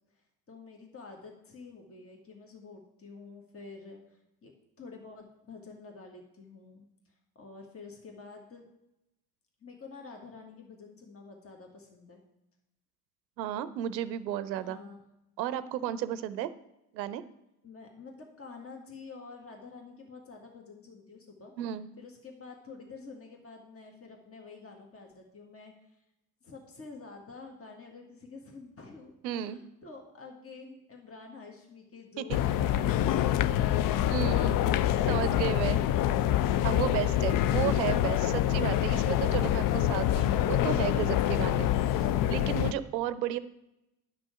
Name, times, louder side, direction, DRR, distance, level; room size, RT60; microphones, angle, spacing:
voice 1, 0.5-4.5 4.8-8.7 9.6-12.2 14.5-15.0 16.1-16.3 17.6-21.5 22.0-26.0 26.4-35.6, left 4 dB, 25° left, 1 dB, 1.8 m, -48 dB
voice 2, 13.4-14.8 15.4-16.5 16.9-17.2 21.6-21.9 29.2-29.6 32.2-32.4 34.1-34.6 35.1-35.8 36.6-41.7 42.3-43.4, right 11 dB, 85° right, 15 dB, 0.6 m, -33 dB
sound 1, 32.3-42.7, left 12 dB, 45° left, 0.4 m, -26 dB
11.0 x 6.1 x 4.8 m, 0.89 s
hypercardioid pair, 55°, 50 cm